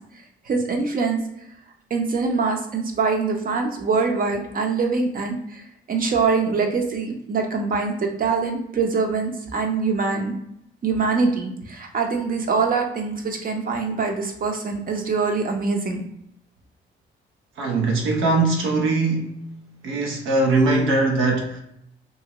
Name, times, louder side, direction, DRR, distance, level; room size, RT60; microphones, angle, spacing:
voice 1, 0.5-1.2 1.9-5.6 5.9-10.4 10.8-16.0, right 4 dB, 45° right, 0.7 m, -24 dB
voice 2, 17.6-19.4 19.8-21.6, right 2 dB, 90° right, 0.7 m, -21 dB
2.8 x 2.6 x 2.9 m
cardioid pair, 90°, 20 cm